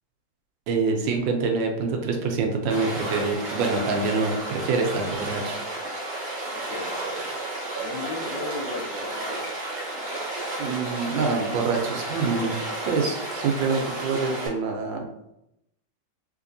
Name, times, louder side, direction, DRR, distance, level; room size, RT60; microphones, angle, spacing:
voice 1, 0.7-5.6 10.6-12.6 12.8-15.0, right 4 dB, 75° right, 2 dB, 1.2 m, -26 dB
Stream, 2.7-14.5, right 2 dB, 60° right, 0.5 m, -32 dB
voice 2, 6.7-7.3 7.8-9.5, left 3 dB, 70° left, -1 dB, 1.4 m, -36 dB
3.4 x 3.2 x 2.6 m, 0.85 s
omnidirectional pair, 2.1 m